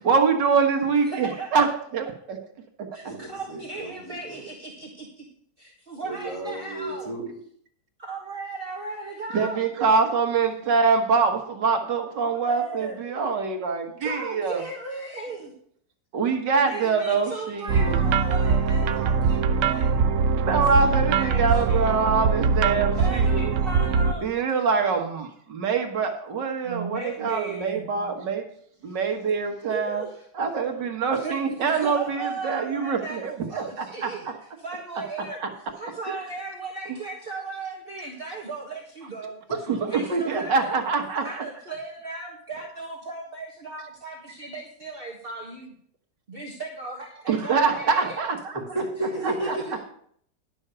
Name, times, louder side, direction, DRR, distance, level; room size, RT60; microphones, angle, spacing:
voice 1, 0.0-1.7 1.9-2.4 3.0-3.1 9.3-14.6 16.1-18.0 20.5-23.4 24.2-28.4 28.8-30.0 30.4-34.3 35.4-35.5 36.1-36.2 39.5-41.4 47.3-48.6 49.2-49.6, right 5 dB, 85° right, 5 dB, 2.0 m, -24 dB
voice 2, 1.1-1.5 2.9-5.2 5.6-7.1 8.0-9.6 12.2-13.0 14.0-15.5 16.5-20.0 21.1-22.0 22.9-24.3 26.6-27.8 29.7-30.2 31.1-34.3 34.6-39.4 39.9-40.7 41.2-45.7 46.3-48.2 49.2-49.6, right 3 dB, 35° right, -1 dB, 1.5 m, -36 dB
voice 3, 3.0-4.4 6.0-7.3 48.5-49.8, right 1 dB, 15° left, -4 dB, 3.8 m, -33 dB
sound 1, 17.7-24.1, right 5 dB, 60° right, 0.9 m, -22 dB
11.0 x 6.3 x 6.8 m, 0.63 s
omnidirectional pair, 1.8 m